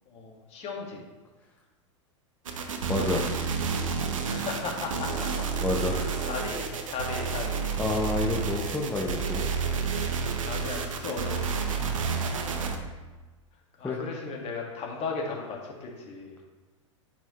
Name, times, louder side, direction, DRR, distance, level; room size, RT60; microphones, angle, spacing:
voice 1, 0.1-1.0 4.2-5.7 6.2-7.7 10.4-11.7 13.8-16.4, left 4 dB, 40° left, -1 dB, 1.9 m, -36 dB
sound 1, 2.5-12.8, right 5 dB, 85° right, 0.9 m, -30 dB
voice 2, 2.9-3.2 5.6-6.2 7.8-9.5 11.8-12.2 13.8-14.0, left 2 dB, 10° left, -2 dB, 0.9 m, -29 dB
10.0 x 4.5 x 3.2 m, 1.2 s
hypercardioid pair, 105°, 16 cm